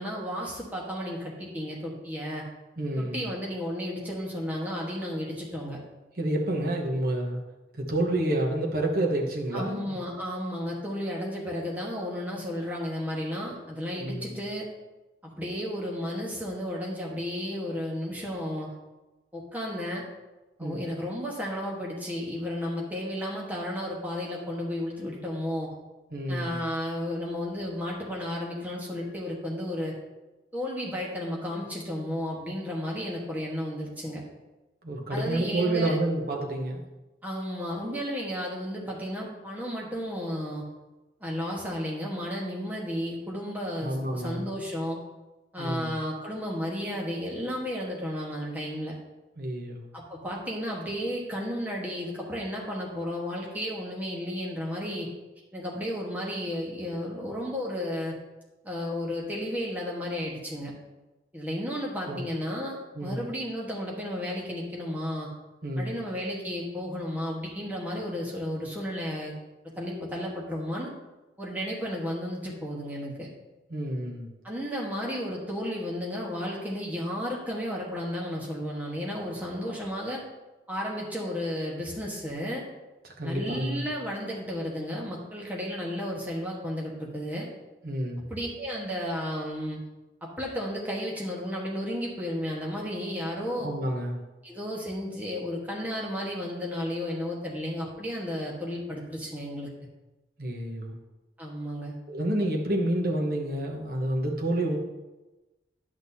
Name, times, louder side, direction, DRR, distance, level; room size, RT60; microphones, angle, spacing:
voice 1, 0.0-2.4 3.0-5.8 9.5-14.7 15.2-18.7 19.3-20.0 20.6-25.7 26.3-29.9 30.5-34.2 35.1-36.0 37.2-40.6 41.2-45.0 45.5-48.9 49.9-55.1 55.5-58.1 58.6-60.7 61.3-65.3 65.8-69.3 69.8-70.9 71.4-73.3 74.4-80.2 80.7-82.7 83.2-87.5 88.3-89.8 90.2-93.7 94.4-99.7 101.4-101.9, equal, 10° right, -3 dB, 1.3 m, -33 dB
voice 2, 2.8-3.3 6.2-7.4 7.7-10.0 13.9-14.4 20.6-20.8 26.1-26.6 34.8-36.8 43.8-44.5 45.6-45.9 49.4-49.9 62.1-62.2 62.9-63.2 65.6-66.0 73.7-74.3 83.0-83.9 87.8-88.2 93.6-94.2 100.4-101.0 102.1-104.8, right 1 dB, 55° right, 0 dB, 1.1 m, -29 dB
10.5 x 6.2 x 2.7 m, 1.1 s
head